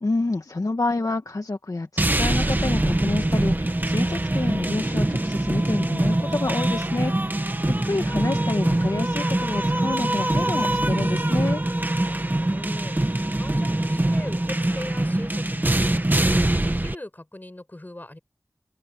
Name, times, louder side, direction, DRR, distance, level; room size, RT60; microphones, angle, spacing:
voice 1, 0.0-7.1 7.4-11.6, left 2 dB, 65° left, 1.7 m, -28 dB
sound 1, 2.0-17.0, right 1 dB, 30° right, 1.8 m, -23 dB
voice 2, 12.1-18.2, left 1 dB, 30° left, 5.3 m, -41 dB
open air
wide cardioid pair, 60°, 6 cm